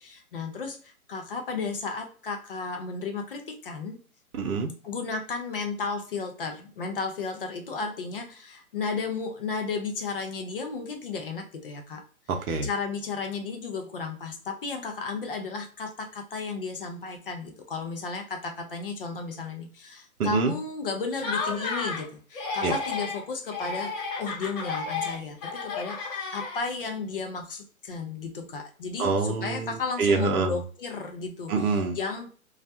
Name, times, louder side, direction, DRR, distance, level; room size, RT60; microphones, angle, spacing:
voice 1, 0.3-0.7 1.1-3.4 3.7-3.9 4.9-6.5 6.8-8.2 8.7-12.0 12.6-15.6 16.3-17.4 17.7-19.7 20.2-22.0 22.6-23.9 24.2-25.3 25.8-25.9 26.3-27.4 27.9-29.1 29.4-31.5 32.0-32.3, left 4 dB, 40° left, 4 dB, 0.4 m, -33 dB
voice 2, 4.3-4.7 12.3-12.7 20.2-20.5 22.6-22.8 29.0-30.6 31.5-32.0, right 4 dB, 75° right, 4 dB, 0.6 m, -26 dB
Laughter, 21.1-22.1 22.3-23.2 23.5-26.8, left 4 dB, 60° left, 1.2 m, -32 dB
2.3 x 2.1 x 2.6 m, 0.41 s
hypercardioid pair, 140°, 44 cm